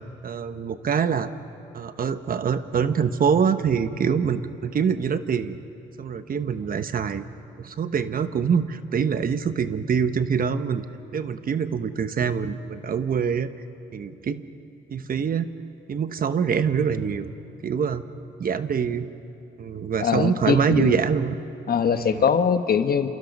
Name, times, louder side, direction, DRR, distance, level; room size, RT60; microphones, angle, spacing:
voice 1, 0.2-1.3 1.7-5.6 6.0-7.2 7.6-10.8 11.1-13.5 13.9-14.4 14.9-15.5 15.9-17.3 17.6-18.0 18.4-19.1 19.6-21.4 21.9-22.2, right 6 dB, 45° right, 11 dB, 1.1 m, -24 dB
voice 2, 20.0-21.0 21.7-23.1, left 7 dB, 50° left, 9 dB, 1.3 m, -22 dB
28.0 x 27.0 x 5.4 m, 2.8 s
cardioid pair, 90°, 20 cm